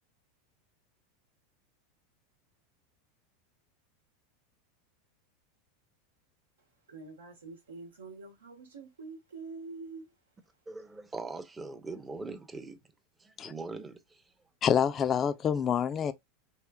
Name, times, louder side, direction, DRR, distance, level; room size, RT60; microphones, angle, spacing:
voice 1, 6.9-10.1, right 4 dB, 85° right, 1.0 m, -45 dB
voice 2, 10.7-12.8 13.2-14.2, right 3 dB, 15° right, 0.5 m, -41 dB
voice 3, 14.6-16.1, left 8 dB, 35° left, 0.3 m, -27 dB
3.0 x 2.9 x 2.2 m
hypercardioid pair, 90°, 0 cm